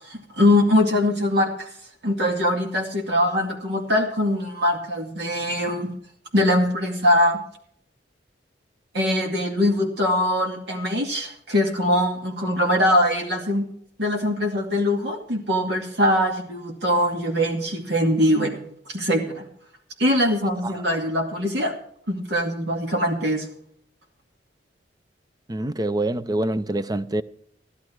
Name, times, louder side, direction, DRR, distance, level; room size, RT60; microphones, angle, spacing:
voice 1, 0.1-1.7 2.0-5.9 6.3-7.4 8.9-13.7 14.0-18.6 18.9-19.4 20.0-21.7 22.1-23.5, left 1 dB, 65° right, 2.4 m, -22 dB
voice 2, 25.5-27.2, right 1 dB, 20° right, 0.5 m, -25 dB
14.5 x 11.5 x 4.6 m
head